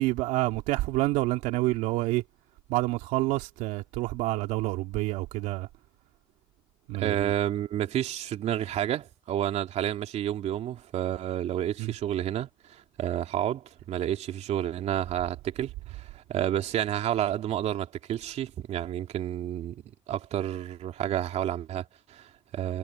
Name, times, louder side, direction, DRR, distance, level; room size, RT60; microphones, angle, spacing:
voice 1, 0.0-2.2 2.7-5.7 6.9-7.3 11.8-11.9, right 18 dB, 85° right, 2.7 m, -28 dB
voice 2, 7.0-19.8 20.1-22.8, right 11 dB, 65° right, 3.1 m, -30 dB
supercardioid pair, 75°, 12 cm